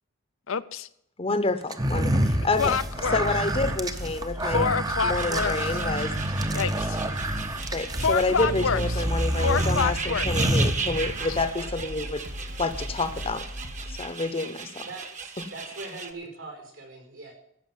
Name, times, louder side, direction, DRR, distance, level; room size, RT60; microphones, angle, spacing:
voice 1, 0.5-0.9 2.6-3.2 4.5-5.8 6.5-7.0 8.0-9.0 9.4-10.5, left 6 dB, 75° left, 14 dB, 0.7 m, -27 dB
voice 2, 1.2-2.8 3.1-4.6 5.0-6.2 7.7-12.2 12.6-13.4 13.9-14.9 15.4-15.5, left 3 dB, 30° left, 11 dB, 0.9 m, -28 dB
sound 1, 1.7-11.4, right 1 dB, 20° right, 0.8 m, -28 dB
sound 2, 2.6-14.0, equal, 55° right, 2.7 m, -38 dB
sound 3, 5.1-16.1, right 5 dB, 35° right, 1.3 m, -37 dB
voice 3, 14.9-17.3, right 3 dB, 80° right, 1 dB, 5.3 m, -41 dB
15.0 x 6.2 x 9.3 m, 0.75 s
head